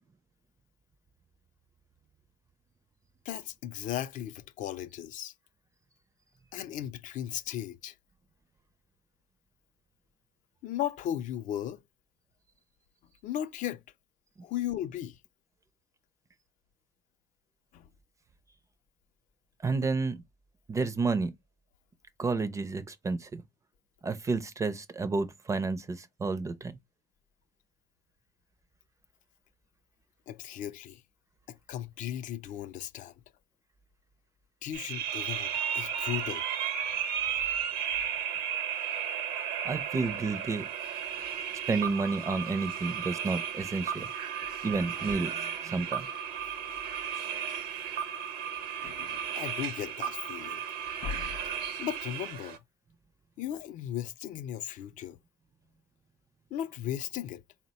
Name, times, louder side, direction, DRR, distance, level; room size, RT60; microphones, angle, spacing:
voice 1, 3.3-5.3 6.5-7.9 10.6-11.8 13.2-13.8 14.4-15.2 17.7-17.8 30.3-31.0 31.5-33.1 34.6-36.4 48.8-50.6 51.0-51.4 51.8-52.6 53.4-55.2 56.5-57.4, left 11 dB, 60° left, 0.4 m, -36 dB
voice 2, 19.6-20.2 20.7-21.3 22.2-23.4 24.0-26.8 39.6-40.7 41.7-44.1 44.6-46.1, right 4 dB, 20° right, 0.4 m, -31 dB
sound 1, 34.7-52.6, right 8 dB, 80° right, 0.8 m, -34 dB
4.0 x 2.1 x 3.9 m
cardioid pair, 130°, 15 cm